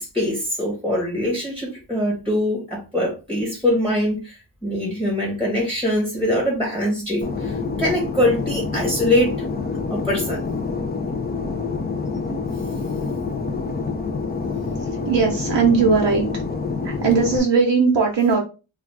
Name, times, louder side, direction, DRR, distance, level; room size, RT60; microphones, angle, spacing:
voice 1, 0.0-9.4 9.9-10.4, left 1 dB, 5° left, -2 dB, 1.0 m, -23 dB
Fixed-wing aircraft airplane, 7.2-17.4, left 4 dB, 25° left, 0.4 m, -27 dB
voice 2, 14.8-16.3 16.8-18.4, right 5 dB, 65° right, 0 dB, 0.7 m, -19 dB
2.4 x 2.4 x 3.1 m, 0.31 s
wide cardioid pair, 80°, 46 cm